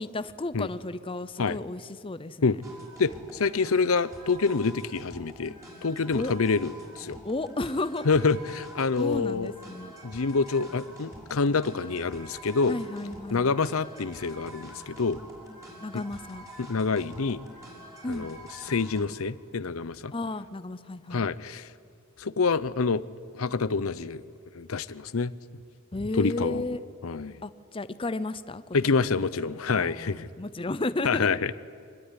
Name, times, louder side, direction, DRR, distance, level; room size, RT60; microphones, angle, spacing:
voice 1, 0.0-2.6 6.1-6.3 7.2-8.1 9.0-9.9 12.7-13.5 15.8-16.5 18.0-18.3 20.1-21.2 25.9-26.8 27.4-28.6 28.9-29.1 29.4-31.3, left 2 dB, 25° left, 14 dB, 0.7 m, -33 dB
sound 1, 2.6-19.0, equal, 15° right, 6.1 m, -47 dB
voice 2, 3.0-5.5 5.8-7.2 8.0-9.5 10.0-12.8 13.3-15.2 15.9-16.0 16.6-17.4 18.1-18.4 18.6-20.1 21.1-21.7 22.2-23.0 23.3-24.2 24.5-25.3 26.1-26.8 27.0-27.4 28.7-30.3 31.0-31.5, left 4 dB, 85° left, 16 dB, 0.7 m, -27 dB
25.0 x 20.0 x 9.9 m, 2.3 s
head